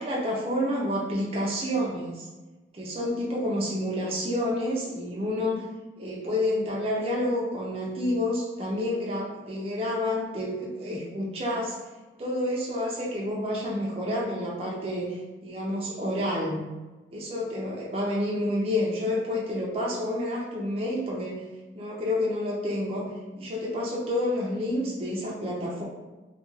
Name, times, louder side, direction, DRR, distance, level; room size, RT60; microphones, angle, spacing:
voice 1, 0.0-2.2 2.7-5.6 6.0-11.7 12.2-16.7 17.1-21.4 21.7-25.8, left 1 dB, 30° right, -5 dB, 0.4 m, -29 dB
2.3 x 2.2 x 3.1 m, 1.2 s
head